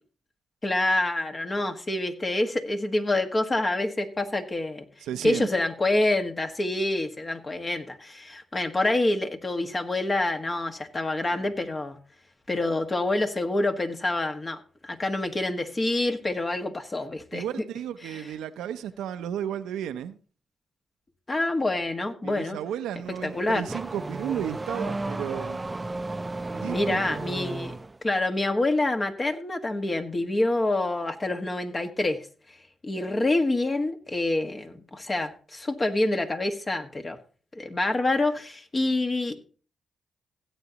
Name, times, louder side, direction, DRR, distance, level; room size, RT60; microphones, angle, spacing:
voice 1, 0.6-4.8 5.2-12.0 12.5-14.6 14.8-17.4 18.0-18.2 21.3-22.6 23.2-23.6 26.6-27.8 28.0-32.2 32.8-37.2 37.5-39.4, left 2 dB, 35° left, 1.5 m, -27 dB
voice 2, 5.0-5.5 17.3-20.2 22.2-25.6 26.5-27.3, right 10 dB, 90° right, 0.6 m, -33 dB
Car / Accelerating revving vroom, 23.0-28.0, right 2 dB, 25° right, 0.5 m, -34 dB
16.5 x 8.2 x 2.9 m
supercardioid pair, 50°, 0 cm